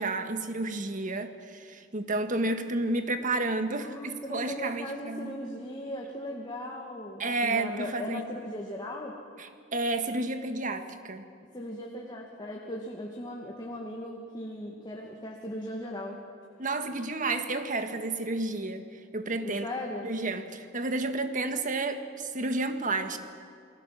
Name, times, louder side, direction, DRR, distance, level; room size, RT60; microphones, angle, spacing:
voice 1, 0.0-5.3 7.2-8.2 9.4-11.2 16.6-19.6 20.0-23.2, right 2 dB, 45° right, 8 dB, 1.6 m, -31 dB
voice 2, 3.8-9.2 11.5-16.2 19.6-20.2, left 1 dB, 25° left, 0 dB, 2.2 m, -38 dB
28.5 x 20.0 x 7.6 m, 2.4 s
head